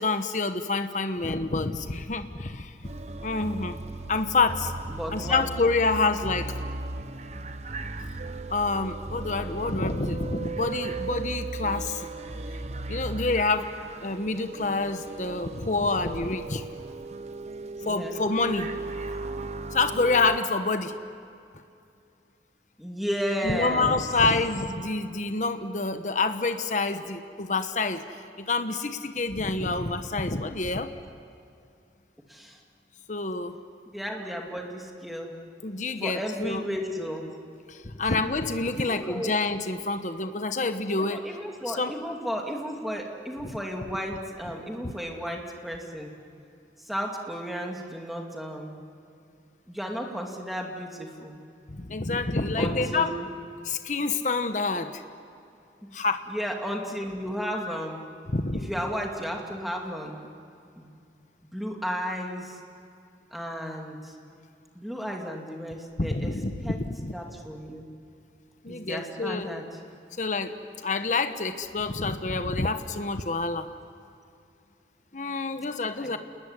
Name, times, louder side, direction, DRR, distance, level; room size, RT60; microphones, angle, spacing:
voice 1, 0.0-2.7 3.2-3.8 4.1-4.7 5.1-6.6 8.5-12.1 12.9-13.7 14.0-16.6 17.8-18.9 19.7-20.9 23.4-28.0 28.4-30.9 33.1-33.6 35.6-36.6 37.7-41.2 41.7-41.9 43.4-43.5 51.7-53.2 53.7-55.0 55.9-56.2 58.3-58.7 66.0-67.1 68.6-69.5 70.2-70.5 70.8-73.7 75.1-76.2, left 3 dB, 45° left, 8 dB, 1.1 m, -27 dB
sound 1, 2.8-20.4, right 3 dB, 35° right, 0.9 m, -36 dB
voice 2, 4.9-5.5 17.8-18.2 22.8-24.0 32.3-32.6 33.9-35.4 36.0-37.3 38.7-39.3 41.0-46.1 46.8-48.8 49.7-51.4 52.6-53.3 55.8-55.9 56.3-58.0 58.5-60.3 60.8-60.9 61.4-62.6 63.3-64.2 64.7-66.3 66.6-66.8 67.1-67.9 68.7-69.6 76.0-76.2, equal, ahead, 0 dB, 2.6 m, -34 dB
28.5 x 20.5 x 9.8 m, 2.5 s
head